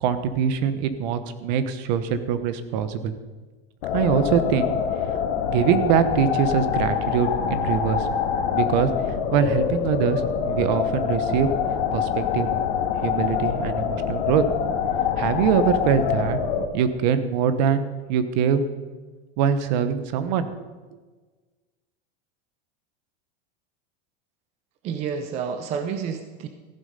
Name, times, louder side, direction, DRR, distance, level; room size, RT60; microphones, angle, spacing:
voice 1, 0.0-3.1 3.9-4.8 5.5-8.1 8.5-8.9 9.3-10.2 10.5-11.5 11.9-12.5 13.0-14.4 15.2-16.4 16.7-18.6 19.4-20.5, right 8 dB, 45° right, 12 dB, 1.0 m, -23 dB
sound 1, 3.8-16.7, left 8 dB, 65° left, 1.7 m, -25 dB
voice 2, 24.8-26.5, right 6 dB, 20° right, 8 dB, 0.5 m, -29 dB
15.0 x 11.0 x 5.2 m, 1.3 s
supercardioid pair, 175°, 29 cm